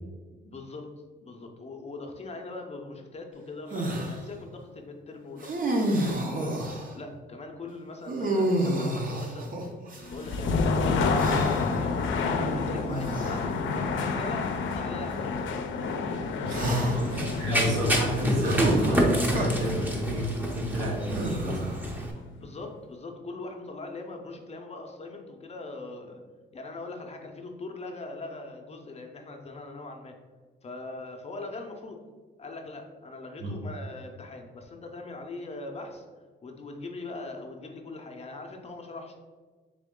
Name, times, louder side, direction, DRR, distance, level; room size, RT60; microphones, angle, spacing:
voice 1, 0.4-0.9 1.2-9.5 10.1-11.4 11.8-15.6 16.6-16.9 17.5-17.6 22.4-26.2 26.5-30.1 30.6-32.0 32.4-36.0 36.4-39.1, left 3 dB, 30° left, 3 dB, 0.6 m, -41 dB
sound 1, 3.7-4.2 5.4-6.9 8.1-10.4 11.2-11.8 12.9-13.4 14.2-14.4 16.5-17.2 18.4-19.5 21.0-21.9, right 1 dB, 45° right, 0.8 m, -30 dB
sound 2, 10.0-21.9, left 4 dB, 75° left, 0.5 m, -30 dB
voice 2, 16.4-21.8 33.4-33.5, equal, 80° right, -3 dB, 1.3 m, -29 dB
Run, 16.5-22.1, equal, 10° right, 0.7 m, -29 dB
3.7 x 3.1 x 3.6 m, 1.4 s
cardioid pair, 90°, 20 cm